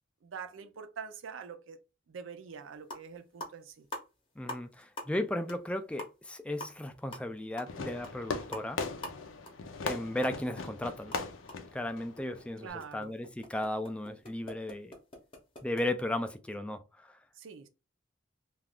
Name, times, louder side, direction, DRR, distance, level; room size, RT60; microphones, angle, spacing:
voice 1, 0.2-1.8 2.1-3.9 12.6-13.1 17.3-17.7, right 6 dB, 70° right, 0.5 m, -45 dB
sound 1, 2.5-2.6 2.8-3.1 3.4-4.7 5.0-5.2 5.5-5.6 5.9-10.7 10.9-15.8, left 1 dB, 25° left, 0.7 m, -46 dB
voice 2, 4.4-8.8 9.8-11.1 11.7-14.9 15.6-17.2, left 1 dB, 5° left, 0.3 m, -35 dB
Fireworks, 7.7-12.7, left 4 dB, 80° left, 0.5 m, -39 dB
2.4 x 2.3 x 3.5 m
head